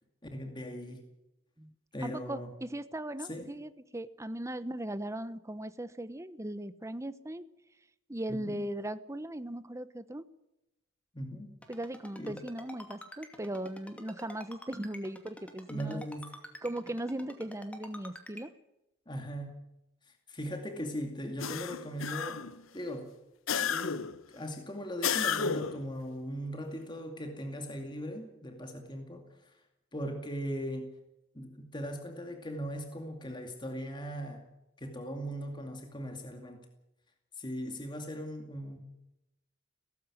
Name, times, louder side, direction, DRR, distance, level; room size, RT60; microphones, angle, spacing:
voice 1, 0.3-1.0 1.9-2.5 3.2-3.5 8.3-8.6 11.1-11.5 12.2-12.4 15.7-16.3 19.1-19.6 20.3-22.4 22.7-23.1 23.5-29.5 29.9-30.9 31.3-34.4 34.8-36.6 37.4-38.8, equal, 25° left, 4 dB, 2.4 m, -39 dB
voice 2, 2.0-7.4 8.1-10.3 11.7-16.0 16.6-18.5, right 1 dB, 15° right, 13 dB, 0.9 m, -38 dB
Ringtone, 11.6-18.4, left 1 dB, 5° left, 2.4 m, -47 dB
sound 1, 21.4-22.6 23.5-24.2 25.0-25.9, left 7 dB, 85° left, 0.9 m, -32 dB
18.0 x 15.0 x 9.7 m, 0.92 s
head